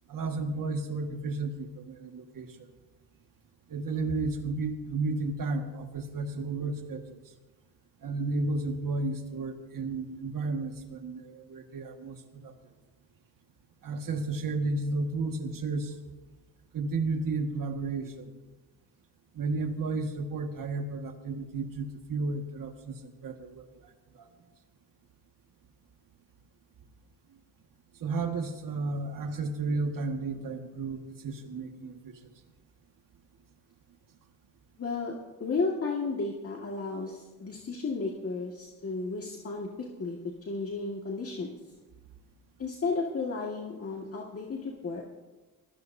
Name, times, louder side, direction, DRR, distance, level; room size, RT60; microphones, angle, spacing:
voice 1, 0.1-2.6 3.7-7.1 8.0-12.6 13.8-16.0 16.7-18.4 19.3-23.7 24.1-24.3 28.0-32.2, right 3 dB, 60° right, 5 dB, 1.7 m, -33 dB
voice 2, 34.8-35.1 35.4-41.5 42.6-45.0, left 4 dB, 40° left, -1 dB, 1.9 m, -33 dB
24.5 x 15.5 x 2.7 m, 1.2 s
cardioid pair, 85°, 37 cm